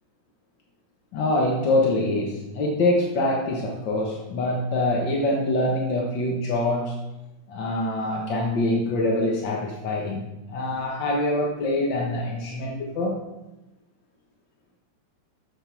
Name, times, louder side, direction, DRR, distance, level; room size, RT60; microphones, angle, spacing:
voice 1, 1.1-7.0 7.5-13.2, left 1 dB, 60° left, -1 dB, 1.2 m, -25 dB
10.0 x 7.3 x 4.6 m, 1.0 s
omnidirectional pair, 3.4 m